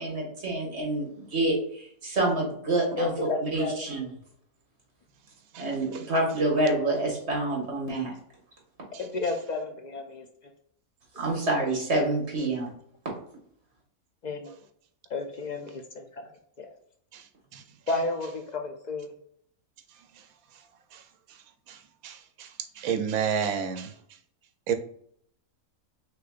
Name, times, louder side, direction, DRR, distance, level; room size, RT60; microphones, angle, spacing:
voice 1, 0.0-3.1 3.4-4.1 5.6-8.1 11.2-12.7, right 2 dB, 50° right, -1 dB, 2.0 m, -27 dB
voice 2, 3.0-3.9 9.0-10.3 14.2-14.5 15.1-16.3 16.6-16.7 17.9-19.1, left 3 dB, 75° left, 4 dB, 0.4 m, -32 dB
voice 3, 22.0-22.5 22.8-23.9 24.7-24.8, right 7 dB, 80° right, 8 dB, 1.1 m, -29 dB
5.5 x 3.2 x 2.5 m, 0.65 s
omnidirectional pair, 1.5 m